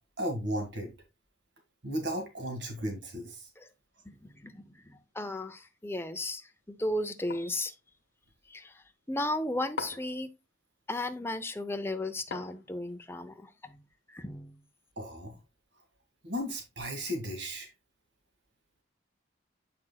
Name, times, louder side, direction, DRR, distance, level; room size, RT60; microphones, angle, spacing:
voice 1, 0.2-0.9 1.8-3.5 15.0-15.3 16.2-17.7, equal, 70° right, 1.8 m, -35 dB
voice 2, 4.0-7.7 8.5-10.3 10.9-13.8 14.1-14.6, left 1 dB, 10° left, 0.6 m, -35 dB
sound 1, 7.3-7.6 9.8-10.2 12.3-12.9, left 4 dB, 75° left, 1.0 m, -40 dB
7.6 x 5.9 x 2.2 m
head